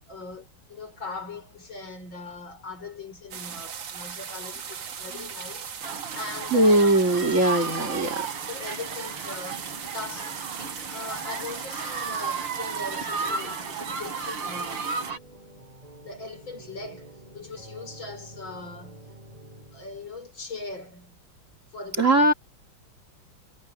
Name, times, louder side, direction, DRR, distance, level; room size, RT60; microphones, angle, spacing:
voice 1, 0.1-6.8 8.5-9.7 9.9-10.4 10.9-14.9 16.0-19.1 19.7-21.2 21.7-22.2, left 3 dB, 60° left, 5.5 m, -40 dB
sound 1, 3.3-15.1, right 7 dB, 65° right, 2.2 m, -38 dB
sound 2, 5.8-15.2, right 5 dB, 85° right, 5.2 m, -34 dB
voice 2, 6.5-8.3 22.0-22.3, right 1 dB, 35° right, 2.7 m, -20 dB
sound 3, 14.4-20.2, right 1 dB, 15° right, 4.3 m, -48 dB
omnidirectional pair, 2.4 m